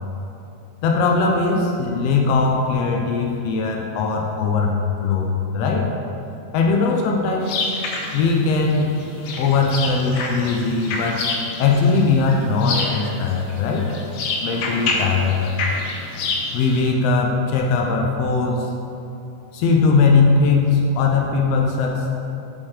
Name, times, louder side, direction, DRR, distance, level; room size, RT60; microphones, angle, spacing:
voice 1, 0.8-5.9 6.5-7.6 8.1-8.9 9.4-11.2 11.6-13.9 14.4-15.5 16.5-18.7 19.5-22.1, left 4 dB, 90° left, 0 dB, 1.4 m, -20 dB
sound 1, 7.4-16.8, left 3 dB, 75° left, 1.5 m, -28 dB
7.3 x 6.2 x 3.2 m, 2.8 s
omnidirectional pair, 3.6 m